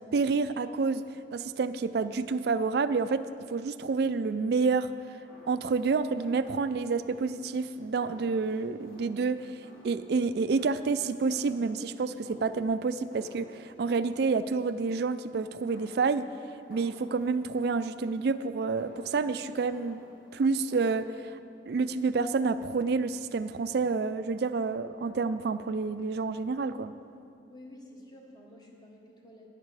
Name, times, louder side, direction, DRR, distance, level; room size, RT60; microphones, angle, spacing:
voice 1, 0.1-1.0 1.3-4.9 5.5-16.3 16.7-20.0 20.3-21.4 21.7-26.9, right 4 dB, 60° right, 13 dB, 0.4 m, -29 dB
sound 1, 5.0-21.1, left 1 dB, 55° left, 2.1 m, -55 dB
voice 2, 27.5-29.5, left 1 dB, 20° left, -1 dB, 1.3 m, -50 dB
11.0 x 9.9 x 4.8 m, 2.6 s
head